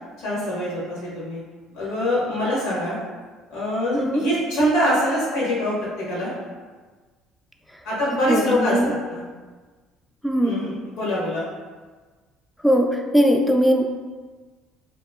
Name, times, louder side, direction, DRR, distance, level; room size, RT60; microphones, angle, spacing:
voice 1, 0.2-1.4 1.7-3.0 3.5-6.3 7.8-8.8 9.1-9.2 10.4-11.4, equal, 85° left, -6 dB, 1.2 m, -24 dB
voice 2, 8.3-8.9 10.2-10.6 12.6-13.8, equal, ahead, 2 dB, 0.3 m, -20 dB
2.8 x 2.6 x 2.3 m, 1.4 s
cardioid pair, 110°, 0 cm